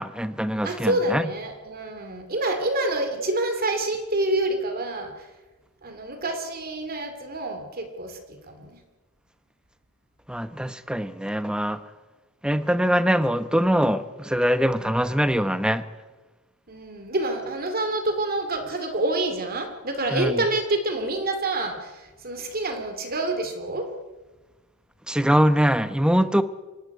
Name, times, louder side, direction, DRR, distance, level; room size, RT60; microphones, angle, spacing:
voice 1, 0.0-1.2 10.3-11.8 12.4-15.8 20.1-20.4 25.1-26.4, equal, 5° right, 0.9 m, -23 dB
voice 2, 0.6-5.3 5.8-8.8 16.7-23.9, right 2 dB, 45° right, 2.5 m, -27 dB
25.0 x 13.0 x 9.5 m
head